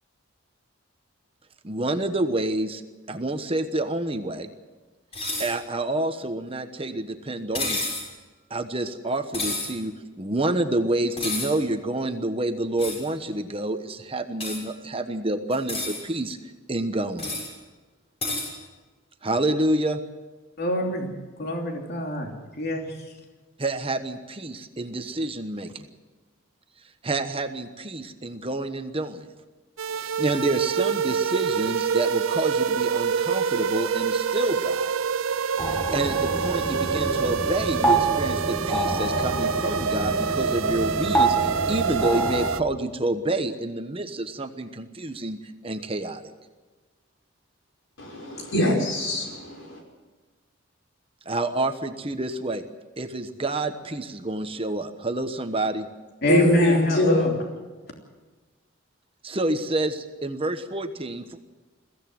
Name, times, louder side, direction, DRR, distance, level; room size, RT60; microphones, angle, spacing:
voice 1, 1.6-2.8 3.1-4.5 5.4-7.8 8.5-16.4 16.7-17.3 19.2-20.0 23.6-25.9 27.0-29.3 30.0-34.9 35.7-46.3 51.3-52.6 53.0-55.9 59.2-61.3, right 2 dB, 25° right, 8 dB, 1.1 m, -28 dB
sound 1, 5.1-5.5 7.5-8.1 9.3-9.7 11.2-11.5 12.8-13.0 14.4-14.6 15.5-16.0 17.2-17.5 18.2-18.5, left 2 dB, 30° left, 6.2 m, -29 dB
voice 2, 20.6-21.1 21.4-22.3 22.6-22.9 56.2-57.3, equal, 50° left, 1 dB, 3.1 m, -25 dB
sound 2, 29.8-42.6, right 6 dB, 80° right, 0.5 m, -26 dB
sound 3, 35.6-42.5, right 2 dB, 10° left, 2.1 m, -27 dB
voice 3, 48.0-49.7 56.3-57.3, left 1 dB, 70° left, 0 dB, 6.0 m, -23 dB
22.5 x 16.0 x 7.9 m, 1.3 s
head